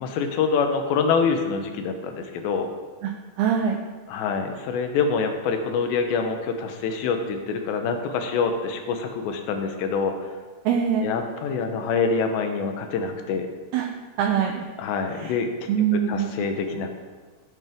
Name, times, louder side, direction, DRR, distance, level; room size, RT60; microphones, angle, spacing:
voice 1, 0.0-2.7 4.1-10.2 11.0-13.5 14.8-15.5 15.9-16.9, left 5 dB, 75° left, 5 dB, 3.0 m, -25 dB
voice 2, 3.4-3.8 10.7-11.1 13.7-13.9 14.2-14.6 15.1-15.3 15.7-16.4, right 8 dB, 85° right, 3 dB, 2.2 m, -23 dB
16.0 x 8.3 x 3.6 m, 1.4 s
omnidirectional pair, 5.3 m